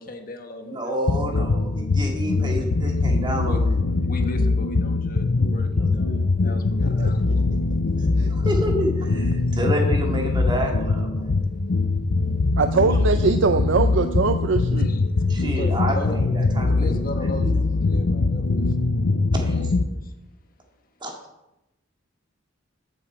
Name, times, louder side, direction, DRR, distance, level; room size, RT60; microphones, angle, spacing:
voice 1, 0.0-1.0 2.4-2.5 3.4-3.6 4.0-7.5 9.5-9.6 11.4-11.7 14.8-16.2 16.7-18.9 19.3-20.1, left 1 dB, 50° left, 5 dB, 1.4 m, -37 dB
voice 2, 0.7-3.7 5.7-6.1 8.3-11.4 15.3-17.0 19.3-19.7 21.0-21.1, equal, 25° right, 1 dB, 2.1 m, -29 dB
sound 1, 1.1-19.8, left 3 dB, 70° left, 0.6 m, -22 dB
voice 3, 12.6-14.9, right 4 dB, 75° right, 9 dB, 0.5 m, -22 dB
14.0 x 7.1 x 4.6 m, 0.94 s
head